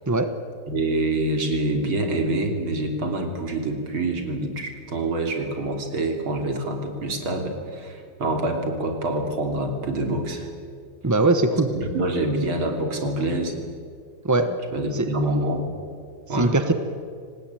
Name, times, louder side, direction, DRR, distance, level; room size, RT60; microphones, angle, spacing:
voice 1, 0.7-10.5 11.8-13.5 14.7-15.7 16.3-16.5, right 2 dB, 85° right, 4 dB, 3.8 m, -26 dB
voice 2, 11.0-11.7 14.2-14.6 14.9-15.1 16.3-16.7, right 2 dB, 20° right, 8 dB, 0.4 m, -20 dB
25.0 x 19.0 x 9.0 m, 2.2 s
omnidirectional pair, 2.2 m